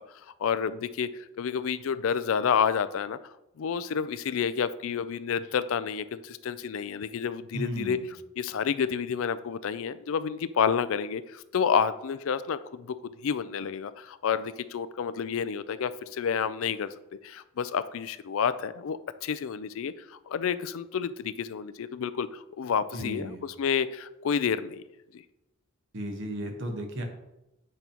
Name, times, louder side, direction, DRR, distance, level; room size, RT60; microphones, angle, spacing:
voice 1, 0.4-1.1 1.4-3.2 3.6-8.0 8.4-16.9 17.2-24.8, left 7 dB, 65° left, 14 dB, 0.4 m, -29 dB
voice 2, 7.5-8.1 22.9-23.4 25.9-27.0, right 1 dB, 55° right, 4 dB, 1.1 m, -34 dB
8.1 x 5.2 x 2.9 m, 0.90 s
head